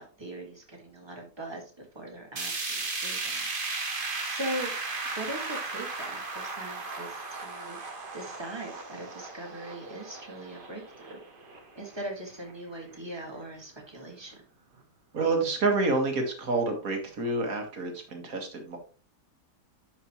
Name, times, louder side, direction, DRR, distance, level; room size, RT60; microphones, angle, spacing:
voice 1, 0.0-4.0 4.2-4.7 5.2-7.8 8.1-11.2 11.7-14.4, right 1 dB, 15° right, 1 dB, 1.9 m, -40 dB
sound 1, 2.4-12.5 12.9-13.0 13.4-13.5 14.3-14.4, right 3 dB, 35° right, 1.3 m, -36 dB
voice 2, 15.1-18.8, right 3 dB, 55° right, 3 dB, 2.2 m, -28 dB
11.0 x 5.2 x 3.1 m, 0.38 s
omnidirectional pair, 1.8 m